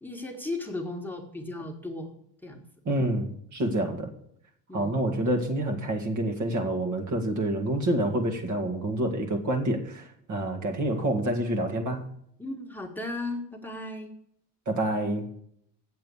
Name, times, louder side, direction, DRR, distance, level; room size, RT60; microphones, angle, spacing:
voice 1, 0.0-2.2 2.4-2.6 4.7-5.0 12.4-14.1, left 2 dB, 5° left, 1 dB, 1.6 m, -36 dB
voice 2, 2.9-4.1 4.7-12.1 14.7-15.3, right 1 dB, 45° right, 2 dB, 2.0 m, -28 dB
8.0 x 7.6 x 7.1 m, 0.70 s
cardioid pair, 110°, 40 cm